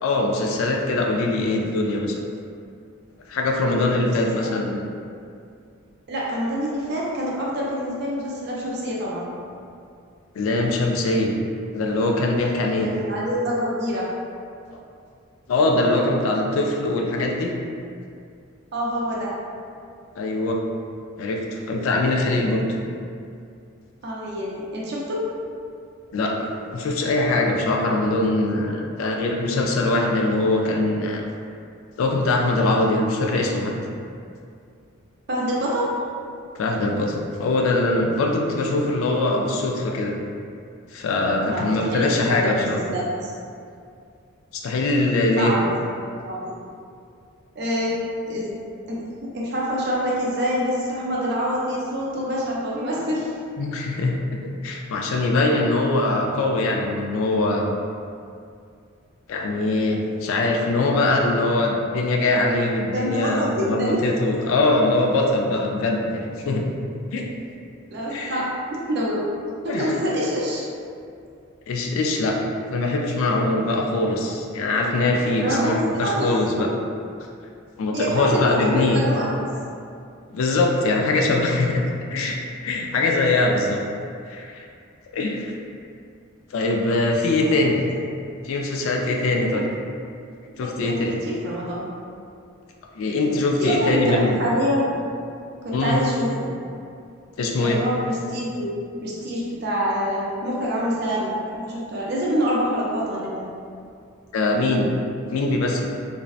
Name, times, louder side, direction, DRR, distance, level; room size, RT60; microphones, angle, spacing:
voice 1, 0.0-2.2 3.3-4.8 10.3-11.3 11.7-12.9 14.7-14.8 15.5-17.5 20.2-20.6 21.2-22.6 26.1-31.2 32.0-33.7 36.5-40.1 40.9-42.8 44.5-45.5 53.6-57.7 59.3-66.6 67.1-67.3 68.1-68.5 69.7-69.9 71.7-72.4 72.7-76.7 77.8-79.0 80.3-81.8 82.1-82.4 82.6-83.8 84.3-84.6 85.1-85.5 86.5-87.8 88.4-89.6 90.6-91.2 93.0-94.5 95.7-96.0 97.4-97.8 104.3-104.9 105.3-105.8, left 2 dB, 75° left, 1 dB, 0.3 m, -22 dB
voice 2, 4.1-4.5 6.1-9.3 12.8-14.1 18.7-19.3 24.0-25.2 35.3-36.0 41.4-43.3 45.4-45.7 46.1-46.6 47.6-47.9 48.3-48.5 48.9-49.0 49.3-53.3 62.9-64.0 64.3-64.4 67.9-69.2 69.6-70.7 75.4-76.3 76.6-76.7 77.9-79.5 83.7-83.8 87.5-87.7 89.5-89.6 90.6-91.9 93.6-95.0 95.6-96.5 97.6-98.7 99.0-103.5, equal, 50° right, -5 dB, 0.4 m, -26 dB
2.6 x 2.0 x 2.4 m, 2.4 s
head